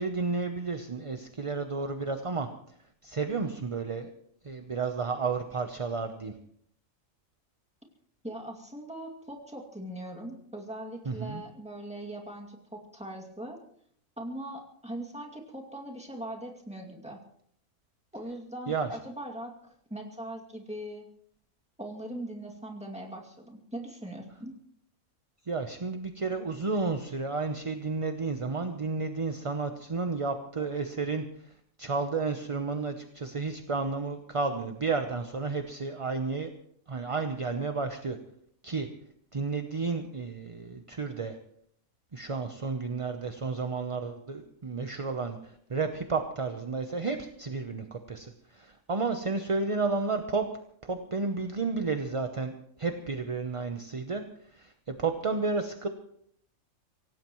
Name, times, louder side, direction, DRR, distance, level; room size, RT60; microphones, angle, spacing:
voice 1, 0.0-2.5 3.0-4.1 4.4-6.3 11.1-11.4 18.7-18.9 25.5-31.2 31.8-36.5 36.9-38.2 38.6-38.9 39.3-41.4 42.1-50.5 50.8-52.5 52.8-54.2 54.5-55.9, right 4 dB, 30° right, 6 dB, 0.7 m, -32 dB
voice 2, 8.2-13.6 14.2-17.2 18.1-21.1 21.8-24.5, right 1 dB, 5° right, -1 dB, 2.3 m, -40 dB
24.5 x 17.5 x 3.1 m, 0.68 s
omnidirectional pair, 1.5 m